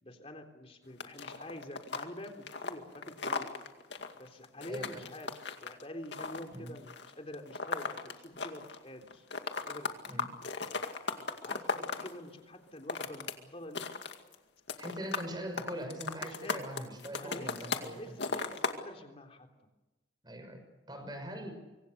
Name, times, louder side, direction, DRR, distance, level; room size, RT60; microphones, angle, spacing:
voice 1, 0.0-3.5 4.1-5.3 5.6-9.3 9.6-10.0 10.8-13.9 16.2-16.6 17.1-17.5 17.9-19.5, left 1 dB, 30° left, 4 dB, 3.5 m, -47 dB
sound 1, 1.0-8.8 9.1-12.1 12.7-13.3 13.6-14.4 14.7-15.3 15.6-17.9 18.2-18.8, left 4 dB, 70° left, 2.2 m, -37 dB
voice 2, 4.7-5.0 6.5-6.7 10.1-10.3 14.8-18.1 20.2-20.6 20.9-21.5, equal, 25° right, 6 dB, 6.2 m, -41 dB
25.5 x 24.5 x 6.7 m, 1.1 s
head